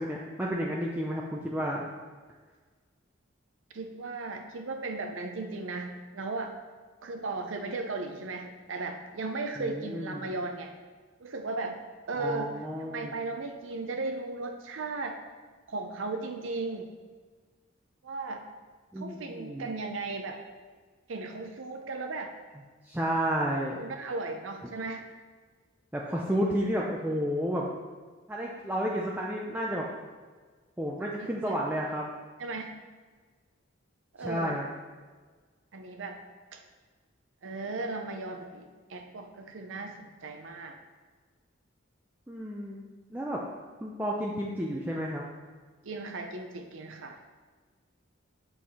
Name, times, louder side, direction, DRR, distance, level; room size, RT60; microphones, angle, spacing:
voice 1, 0.0-1.8 9.6-10.2 12.2-13.1 18.9-19.7 22.8-23.8 25.9-27.7 28.3-29.9 30.8-32.1 34.2-34.7 42.3-42.8 43.1-43.4 43.8-45.2, equal, 10° right, -3 dB, 0.5 m, -31 dB
voice 2, 3.7-6.5 7.0-10.7 11.2-11.8 12.1-15.2 15.7-16.9 18.0-18.4 19.0-20.4 21.1-22.3 23.8-25.0 31.0-31.6 32.4-32.8 34.1-34.6 35.7-36.2 36.5-36.6 37.4-40.8 45.8-47.2, right 3 dB, 80° right, 5 dB, 0.6 m, -36 dB
7.9 x 4.7 x 4.1 m, 1.4 s
head